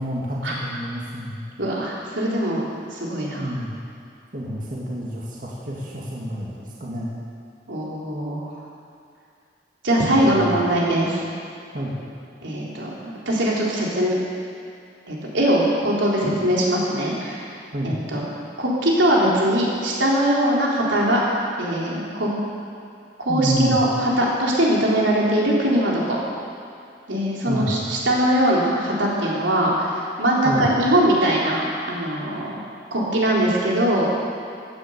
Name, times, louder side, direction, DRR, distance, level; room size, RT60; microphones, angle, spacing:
voice 1, 0.0-1.5 3.4-3.7 4.3-7.1 10.2-10.6 11.7-11.9 17.7-17.9 23.3-23.8 27.5-27.7 30.4-30.7, equal, 45° right, -5 dB, 2.3 m, -28 dB
voice 2, 1.6-3.5 7.7-8.5 9.8-11.2 12.4-14.1 15.1-17.4 17.8-18.2 18.6-21.2 21.6-22.3 23.2-26.2 27.1-29.9 30.2-31.6 31.9-32.6 32.9-34.1, right 1 dB, 90° right, -5 dB, 3.9 m, -21 dB
16.0 x 10.0 x 8.2 m, 2.4 s
head